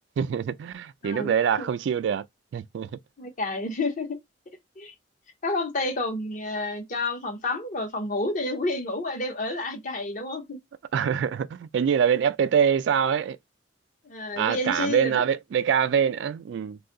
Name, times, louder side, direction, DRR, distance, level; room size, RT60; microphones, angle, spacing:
voice 1, 0.2-2.3 2.5-2.9 10.9-13.4 14.4-16.8, right 7 dB, 75° right, 0.3 m, -24 dB
voice 2, 1.0-1.7 3.2-4.2 4.8-4.9 5.4-10.6 14.0-15.2, left 2 dB, 45° left, 0.9 m, -30 dB
2.6 x 2.4 x 3.7 m
head